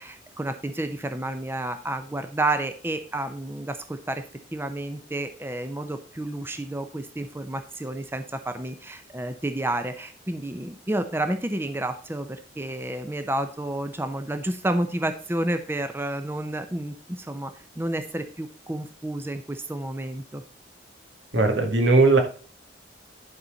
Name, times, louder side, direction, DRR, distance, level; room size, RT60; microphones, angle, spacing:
voice 1, 0.0-4.2 4.5-20.4, right 1 dB, 15° right, 8 dB, 0.6 m, -30 dB
voice 2, 21.3-22.2, right 3 dB, 80° right, 4 dB, 2.0 m, -18 dB
11.0 x 4.2 x 5.1 m, 0.41 s
head